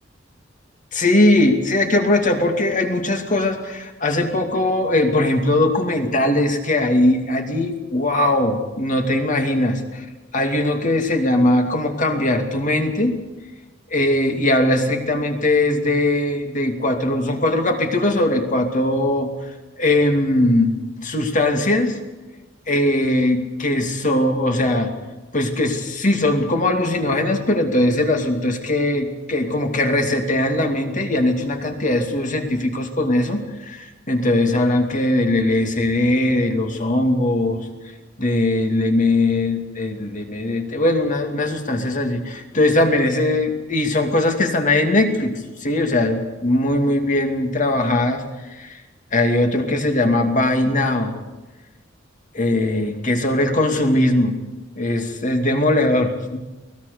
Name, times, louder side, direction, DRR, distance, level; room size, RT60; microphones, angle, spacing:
voice 1, 0.9-10.0 10.3-13.2 13.9-19.3 19.8-20.8 21.0-22.0 22.7-24.9 25.3-37.7 38.2-45.3 45.6-48.8 49.1-51.1 52.3-54.4 54.8-56.4, left 1 dB, 40° left, 4 dB, 2.5 m, -20 dB
23.5 x 18.0 x 6.8 m, 1.1 s
head